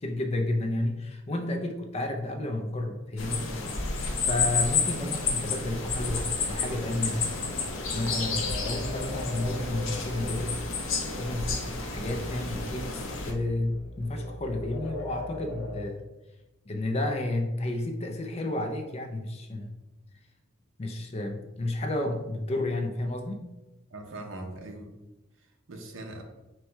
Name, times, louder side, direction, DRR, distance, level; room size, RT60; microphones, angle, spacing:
voice 1, 0.0-3.5 3.8-4.0 4.2-7.4 7.9-10.5 11.1-16.0 16.7-19.7 20.8-23.4, left 1 dB, 30° left, 4 dB, 0.4 m, -31 dB
sound 1, 3.2-13.3, left 4 dB, 65° left, 0.7 m, -31 dB
sound 2, 7.7-15.9, left 1 dB, 90° left, 1.1 m, -40 dB
voice 2, 23.9-25.0 25.4-26.2, right 2 dB, 65° right, 3 dB, 0.7 m, -41 dB
4.3 x 2.2 x 4.4 m, 1.0 s
head